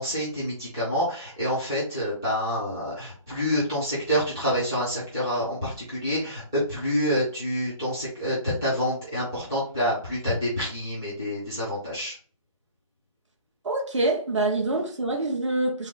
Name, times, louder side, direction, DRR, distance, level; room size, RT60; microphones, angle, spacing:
voice 1, 0.0-12.1, equal, 5° right, 0.5 m, -27 dB
voice 2, 13.6-15.9, right 2 dB, 55° right, 0.9 m, -25 dB
3.9 x 2.0 x 3.8 m
figure-of-eight pair, 170°, 18 cm